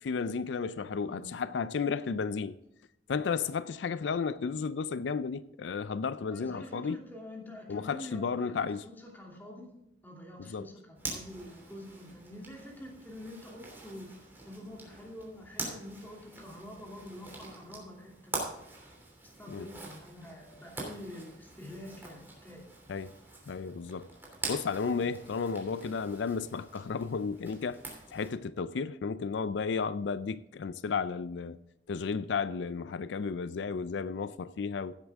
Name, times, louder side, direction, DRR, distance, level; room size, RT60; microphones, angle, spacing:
voice 1, 0.0-2.6 3.1-7.0 7.7-8.8 10.4-10.7 19.5-19.7 22.9-23.1 23.5-24.1 24.5-27.8 28.1-31.6 31.9-34.9, left 5 dB, 85° left, 0.4 m, -33 dB
voice 2, 6.3-9.7 10.0-14.1 14.4-18.5 19.2-22.7, left 1 dB, 10° left, 2.7 m, -47 dB
Zipper (clothing), 11.0-28.3, right 2 dB, 10° right, 2.9 m, -44 dB
16.0 x 8.2 x 3.6 m
head